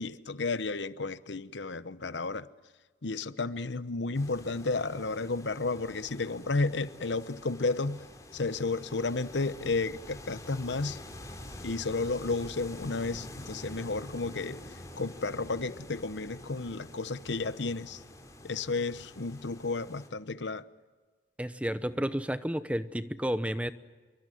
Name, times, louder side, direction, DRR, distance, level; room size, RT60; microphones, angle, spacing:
voice 1, 0.0-2.5 3.0-8.0 8.3-11.0 11.6-14.6 15.0-18.0 18.4-20.6, left 3 dB, 75° left, 0.9 m, -32 dB
sound 1, 4.1-20.1, left 1 dB, 20° left, 3.7 m, -47 dB
voice 2, 21.4-23.7, equal, 5° right, 0.8 m, -31 dB
26.5 x 23.5 x 9.3 m
head